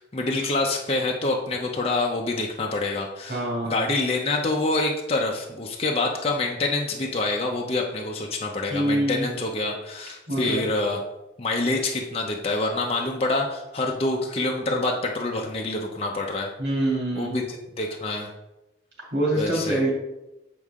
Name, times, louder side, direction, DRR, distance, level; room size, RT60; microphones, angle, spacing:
voice 1, 0.0-11.0 11.4-16.5 17.2-18.3 19.3-19.8, left 2 dB, 35° left, 0 dB, 0.7 m, -26 dB
voice 2, 3.2-3.8 8.7-9.3 10.3-10.7 16.6-17.4 19.1-19.9, right 1 dB, 80° right, -4 dB, 2.6 m, -25 dB
8.2 x 4.7 x 3.6 m, 0.97 s
head